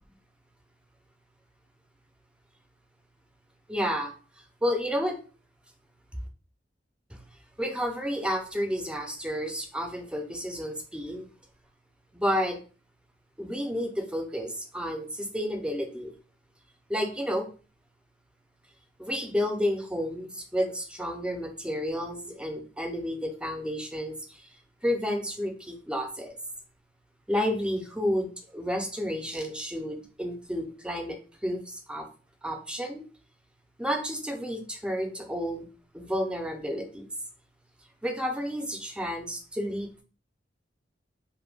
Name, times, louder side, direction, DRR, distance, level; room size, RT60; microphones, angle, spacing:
voice 1, 3.7-4.1 4.6-5.2 7.6-11.2 12.1-12.6 13.4-16.1 16.9-17.5 19.0-24.1 24.8-26.4 27.3-31.2 31.4-32.0 32.4-33.0 33.8-35.7 35.9-37.0 38.0-40.0, equal, 5° right, 3 dB, 0.4 m, -31 dB
2.1 x 2.1 x 3.2 m, 0.37 s
head